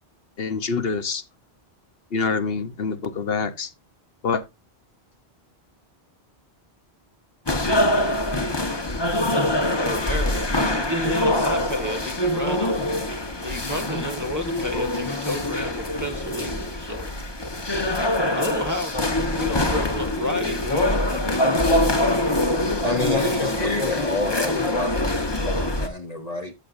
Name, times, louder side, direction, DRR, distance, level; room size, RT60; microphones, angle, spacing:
voice 1, 0.4-1.2 2.1-3.7 4.2-4.4, left 5 dB, 65° left, 1.1 m, -26 dB
sound 1, 7.5-25.9, left 1 dB, 25° left, 1.2 m, -24 dB
voice 2, 9.8-12.9 13.3-17.1 18.3-22.3, left 1 dB, 15° right, 1.5 m, -31 dB
voice 3, 22.8-26.5, left 2 dB, 40° left, 0.9 m, -29 dB
13.5 x 7.4 x 2.6 m
omnidirectional pair, 1.1 m